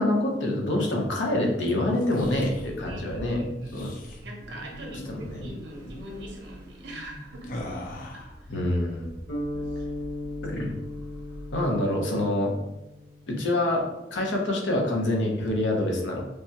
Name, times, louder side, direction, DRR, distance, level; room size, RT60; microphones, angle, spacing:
voice 1, 0.0-3.9 5.1-5.4 8.5-9.1 10.4-10.7 11.5-12.5 13.3-13.9 14.1-16.2, left 1 dB, 85° left, 0 dB, 0.6 m, -26 dB
sound 1, 1.8-2.7 3.6-4.2 4.8-5.1 5.3-5.6 5.9-6.1 7.4-8.4, left 2 dB, 45° left, 0.4 m, -41 dB
Car / Idling / Accelerating revving vroom, 2.2-11.7, equal, 20° right, 0.4 m, -44 dB
voice 2, 2.9-3.7 4.2-7.7 8.1-8.6 9.5-9.9, right 1 dB, 70° right, 1 dB, 0.6 m, -43 dB
sound 2, 9.3-13.6, left 1 dB, 65° left, 1.2 m, -37 dB
3.3 x 2.1 x 2.8 m, 0.96 s
head